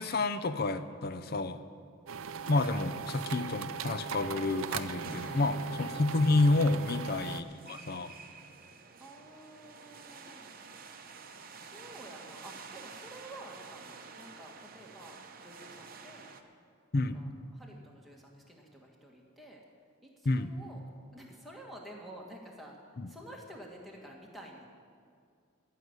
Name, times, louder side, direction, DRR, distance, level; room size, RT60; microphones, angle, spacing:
voice 1, 0.0-1.6 2.5-8.1 16.9-17.2 20.2-20.5 23.0-23.1, left 2 dB, 45° left, 12 dB, 0.6 m, -29 dB
voice 2, 1.5-1.8 9.0-10.6 11.5-16.3 16.9-19.6 20.0-20.8 21.1-22.8 23.1-24.7, right 1 dB, ahead, -1 dB, 1.7 m, -51 dB
sound 1, 2.1-7.4, right 7 dB, 70° right, 0.5 m, -39 dB
sound 2, 4.1-16.4, right 4 dB, 40° right, 0.8 m, -50 dB
14.5 x 6.6 x 9.6 m, 2.2 s
head